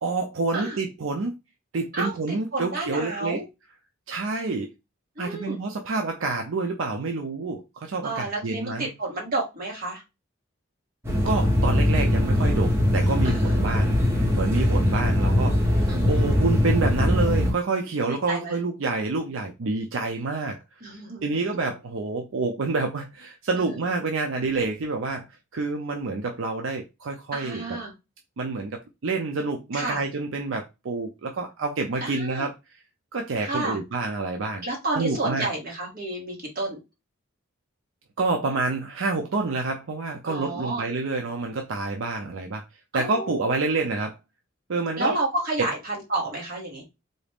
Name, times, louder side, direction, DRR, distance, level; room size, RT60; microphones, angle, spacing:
voice 1, 0.0-1.4 1.7-3.4 4.1-4.7 5.2-8.9 11.2-13.9 14.3-20.6 20.9-27.8 28.4-32.5 33.1-34.6 34.9-35.5 38.2-42.6 42.9-44.2 44.7-45.2, right 3 dB, 75° right, 0.5 m, -28 dB
voice 2, 1.9-3.4 5.2-5.6 8.0-10.0 13.2-13.5 15.9-16.3 18.1-18.6 20.8-21.2 27.3-27.9 29.7-30.0 32.0-32.5 33.4-33.8 34.6-36.8 40.2-40.8 42.9-43.4 45.0-46.8, right 2 dB, 45° right, 1.6 m, -30 dB
sound 1, 11.0-17.5, left 1 dB, 10° right, 0.9 m, -21 dB
4.0 x 2.4 x 3.4 m
head